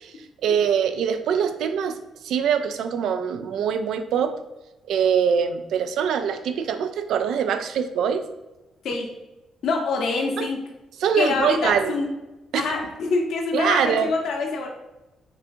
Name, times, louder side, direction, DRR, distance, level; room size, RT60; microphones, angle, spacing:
voice 1, 0.4-2.0 2.2-4.4 4.9-8.2 10.4-10.5 11.0-11.9 12.5-12.7 13.5-14.1, right 7 dB, 75° right, 9 dB, 0.3 m, -23 dB
voice 2, 9.6-10.6 11.2-12.1 12.5-14.7, left 4 dB, 70° left, 2 dB, 0.7 m, -25 dB
5.4 x 2.4 x 2.5 m, 1.0 s
cardioid pair, 90°, 0 cm